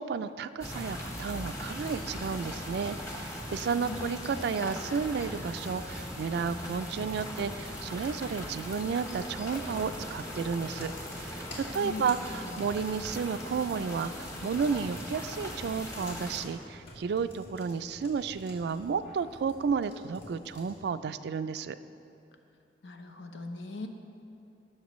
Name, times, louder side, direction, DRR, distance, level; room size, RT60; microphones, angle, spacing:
voice 1, 0.0-21.8, right 6 dB, 65° right, 13 dB, 0.3 m, -32 dB
sound 1, 0.6-16.4, equal, 20° left, 1.1 m, -40 dB
sound 2, 1.2-20.8, equal, 60° left, 2.2 m, -51 dB
voice 2, 3.4-4.2 11.7-12.6 22.8-23.9, left 3 dB, 85° left, 5 dB, 0.8 m, -41 dB
17.5 x 6.7 x 3.1 m, 2.7 s
head